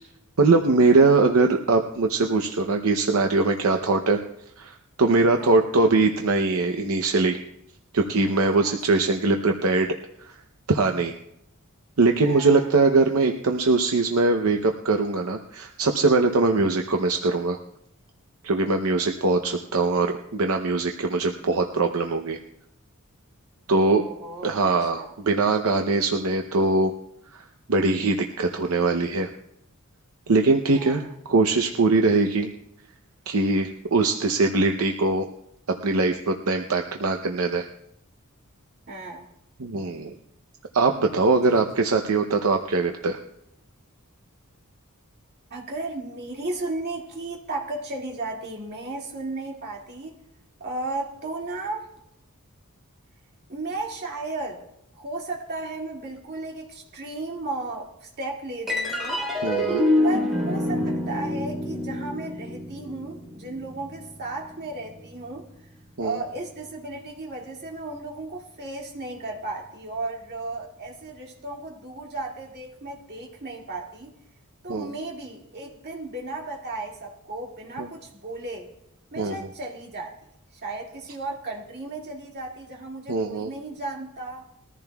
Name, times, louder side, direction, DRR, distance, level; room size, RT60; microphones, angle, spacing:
voice 1, 0.4-4.2 4.6-7.4 7.9-10.4 10.7-11.1 12.0-17.6 18.4-22.4 23.7-24.0 24.4-26.9 27.3-27.4 27.7-29.3 30.3-31.0 31.3-32.5 33.3-35.3 35.8-37.7 39.6-40.1 40.7-43.2 59.4-59.8 66.0-66.2 74.7-74.9 77.8-77.9 79.2-79.4 83.1-83.5, right 3 dB, 70° right, 4 dB, 0.7 m, -22 dB
voice 2, 12.2-12.7 16.5-16.7 23.8-24.6 25.0-25.1 30.7-31.0 38.9-39.3 41.5-41.6 45.5-50.2 50.6-51.9 53.5-54.7 54.9-59.2 60.0-65.4 66.0-74.1 74.6-78.7 79.1-80.1 80.5-84.5, right 2 dB, 45° right, -2 dB, 2.2 m, -34 dB
sound 1, 58.7-65.4, left 1 dB, ahead, 3.5 m, -27 dB
21.5 x 14.5 x 2.3 m, 0.80 s
head